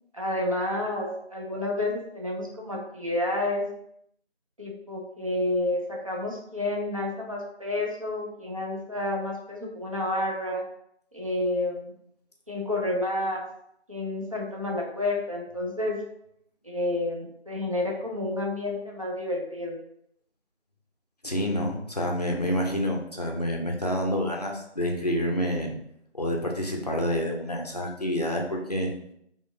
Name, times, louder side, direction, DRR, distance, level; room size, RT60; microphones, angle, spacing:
voice 1, 0.1-3.6 4.6-10.6 11.1-11.9 12.5-13.5 13.9-16.0 16.6-19.7, left 1 dB, 30° right, -2 dB, 0.7 m, -30 dB
voice 2, 21.2-25.7 26.1-28.9, equal, 35° left, 0 dB, 0.6 m, -28 dB
4.4 x 3.0 x 2.7 m, 0.72 s
figure-of-eight pair, 165°, 34 cm